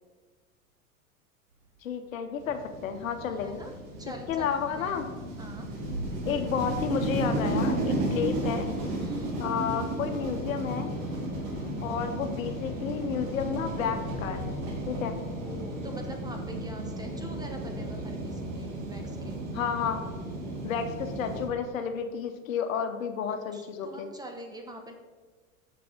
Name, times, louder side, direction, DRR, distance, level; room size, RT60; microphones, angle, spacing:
Thunder / Rain, 1.5-9.8, right 2 dB, 80° right, 2.6 m, -47 dB
voice 1, 1.8-3.6 4.3-5.1 6.3-8.7 9.4-10.9 11.8-14.5 14.9-15.2 19.5-20.0 20.6-24.1, left 7 dB, 65° left, 7 dB, 0.9 m, -31 dB
sound 1, 2.4-21.5, right 1 dB, 45° right, 1.7 m, -34 dB
voice 2, 3.3-4.5 4.7-5.1 5.4-5.7 9.0-9.3 15.4-19.4 23.3-24.9, right 1 dB, 10° right, 3 dB, 0.9 m, -44 dB
Run, 5.7-15.4, left 4 dB, 20° left, 1.4 m, -44 dB
6.7 x 6.2 x 4.5 m, 1.4 s
figure-of-eight pair, 90°, 43 cm